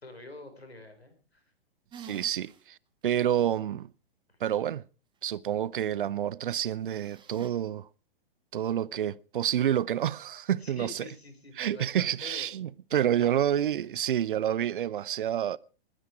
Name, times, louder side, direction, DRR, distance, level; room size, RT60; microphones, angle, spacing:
voice 1, 0.0-1.4 10.6-12.5 12.9-13.5, left 2 dB, 85° left, 4.6 m, -46 dB
sound 1, 1.9-2.6 3.1-3.2 6.9-7.5, right 8 dB, 15° right, 1.9 m, -48 dB
voice 2, 2.0-2.8 3.0-3.9 4.4-4.8 5.2-7.9 8.5-11.0 11.6-15.6, right 10 dB, 60° right, 0.6 m, -28 dB
20.5 x 10.0 x 4.7 m
figure-of-eight pair, 110°, 30 cm